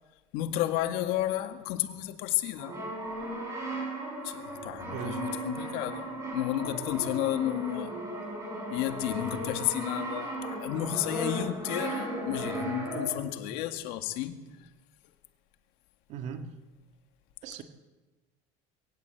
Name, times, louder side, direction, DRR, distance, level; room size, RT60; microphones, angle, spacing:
voice 1, 0.3-2.7 4.2-7.9 8.7-14.4, left 13 dB, 70° left, 1.9 m, -32 dB
Brass instrument, 2.5-13.4, right 1 dB, 20° right, 6.6 m, -36 dB
voice 2, 4.9-5.2 16.1-16.5 17.4-17.6, right 7 dB, 45° right, 1.7 m, -38 dB
22.5 x 17.5 x 8.1 m
cardioid pair, 175°, 16 cm